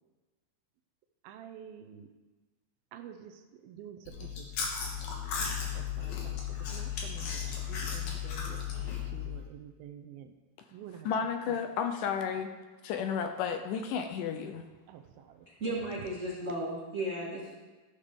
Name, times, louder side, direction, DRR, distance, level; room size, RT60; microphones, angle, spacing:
voice 1, 1.2-2.1 2.9-3.3 3.6-4.3 4.6-4.7 5.8-6.4 6.7-10.3 10.7-11.1 14.9-15.0 15.4-15.5, right 9 dB, 90° right, 5 dB, 2.5 m, -48 dB
Chewing mastication, 4.1-9.4, left 8 dB, 60° left, 2.4 m, -35 dB
voice 2, 11.0-12.5 12.8-14.6, left 7 dB, 80° left, 6 dB, 2.0 m, -32 dB
voice 3, 15.5-17.5, right 1 dB, 65° right, -7 dB, 0.7 m, -35 dB
15.5 x 6.7 x 3.6 m, 1.3 s
omnidirectional pair, 4.1 m